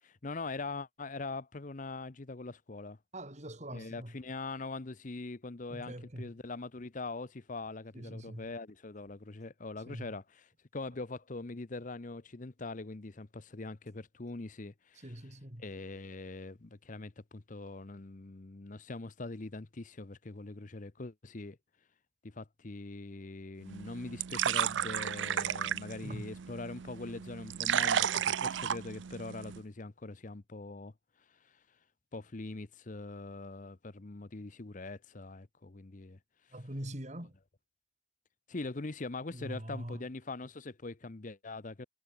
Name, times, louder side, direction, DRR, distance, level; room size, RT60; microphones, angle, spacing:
voice 1, 0.0-3.0 3.7-15.1 15.6-21.6 22.2-30.9 31.3-31.6 32.1-36.2 38.5-41.9, left 3 dB, 40° left, 0.8 m, -42 dB
voice 2, 3.1-4.2 5.7-6.3 7.9-8.5 9.9-10.1 14.9-15.7 26.0-26.3 36.5-37.3 39.3-40.0, right 1 dB, 35° right, 4.9 m, -43 dB
sound 1, 23.6-29.6, right 9 dB, 70° right, 0.5 m, -33 dB
head